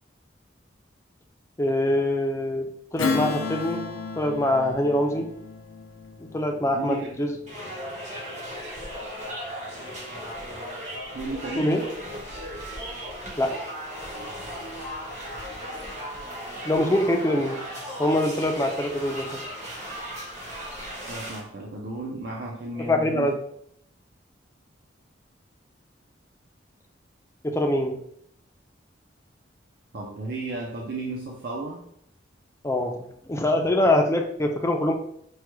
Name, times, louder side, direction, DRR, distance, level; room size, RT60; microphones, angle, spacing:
voice 1, 1.6-3.9 4.2-5.3 6.3-7.4 11.6-11.8 13.4-13.5 16.6-17.6 18.0-19.4 22.9-23.3 27.4-28.0 32.6-34.9, left 1 dB, 15° left, 3 dB, 0.3 m, -24 dB
Strum, 3.0-7.9, left 5 dB, 90° left, 0.4 m, -33 dB
voice 2, 6.7-7.1 11.1-11.7 21.1-23.4 29.9-31.9, right 2 dB, 55° right, -2 dB, 0.5 m, -34 dB
sound 1, 7.5-21.4, equal, 40° right, 1.1 m, -36 dB
4.6 x 2.2 x 3.0 m, 0.71 s
head